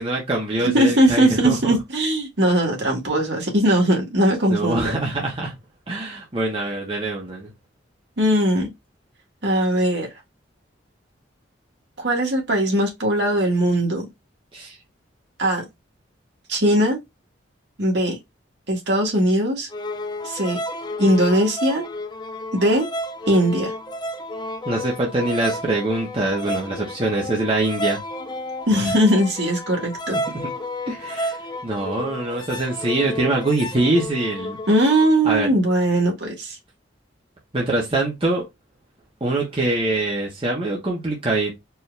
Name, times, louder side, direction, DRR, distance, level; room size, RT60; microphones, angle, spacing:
voice 1, 0.0-1.7 4.5-5.6 5.9-7.5 14.5-14.8 24.6-28.0 30.9-31.4 31.6-34.6 35.2-35.5 37.5-38.4 39.2-41.6, right 2 dB, 30° right, 1.1 m, -24 dB
voice 2, 0.6-5.0 8.2-8.7 9.4-10.1 12.0-14.1 15.4-15.7 16.5-17.0 17.8-18.2 18.7-19.7 20.2-20.6 21.0-21.8 22.5-22.9 23.3-23.7 28.7-30.2 34.7-36.6, right 1 dB, 60° right, 1.8 m, -19 dB
sound 1, 19.7-35.1, left 1 dB, 20° left, 0.4 m, -31 dB
4.7 x 2.8 x 3.4 m
head